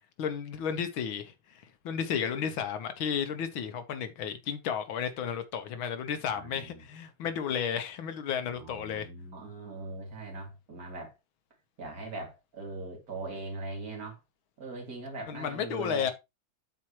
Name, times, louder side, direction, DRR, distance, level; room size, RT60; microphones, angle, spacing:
voice 1, 0.2-9.1 15.3-16.1, left 7 dB, 75° left, 1.7 m, -33 dB
voice 2, 6.3-6.8 8.5-11.1 11.8-14.2 14.6-16.1, right 3 dB, 45° right, 2.8 m, -40 dB
12.5 x 4.3 x 3.0 m
omnidirectional pair, 2.3 m